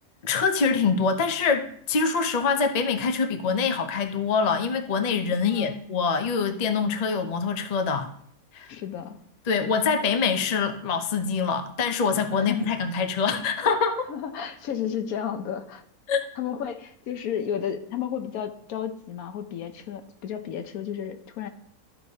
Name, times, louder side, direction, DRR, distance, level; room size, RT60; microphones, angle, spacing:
voice 1, 0.2-8.1 8.5-8.7 9.5-14.0 16.1-16.2, left 5 dB, 45° left, 7 dB, 0.5 m, -25 dB
voice 2, 5.4-5.8 8.7-9.2 12.4-12.7 14.1-15.8 16.4-21.5, left 9 dB, 75° left, 8 dB, 1.2 m, -32 dB
14.0 x 4.7 x 2.8 m, 0.65 s
omnidirectional pair, 1.5 m